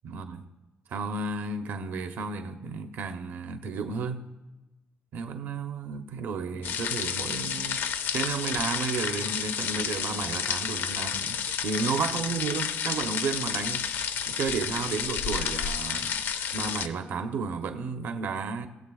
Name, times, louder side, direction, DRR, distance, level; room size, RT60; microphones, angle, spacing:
voice 1, 0.0-0.4 0.9-4.3 5.1-16.2 16.5-18.7, right 5 dB, 60° right, 0.8 m, -33 dB
Small waterfall, 6.6-16.9, left 8 dB, 60° left, 0.5 m, -31 dB
20.0 x 7.7 x 2.4 m
cardioid pair, 180°, 4 cm